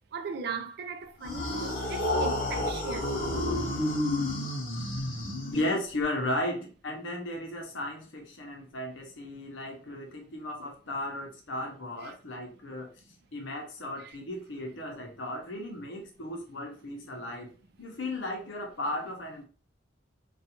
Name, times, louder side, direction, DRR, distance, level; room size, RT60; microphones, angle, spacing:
voice 1, 0.0-3.2 12.0-12.2 14.0-14.2, right 4 dB, 55° right, 0.3 m, -38 dB
sound 1, 1.2-6.0, left 1 dB, 45° left, 0.8 m, -30 dB
voice 2, 5.5-12.9 13.3-17.5 17.8-19.5, left 1 dB, 75° left, 0.7 m, -35 dB
2.5 x 2.3 x 2.8 m
head